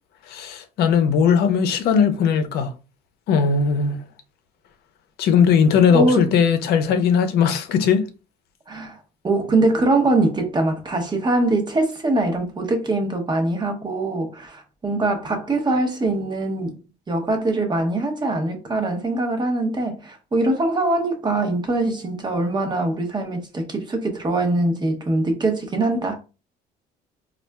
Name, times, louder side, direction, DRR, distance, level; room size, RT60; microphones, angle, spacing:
voice 1, 0.3-2.7 3.3-4.0 5.2-8.0, left 6 dB, 75° left, 0.6 m, -18 dB
voice 2, 5.9-6.3 8.7-9.0 9.2-26.2, right 2 dB, 25° right, 0.8 m, -22 dB
4.1 x 2.4 x 2.2 m
cardioid pair, 110°, 17 cm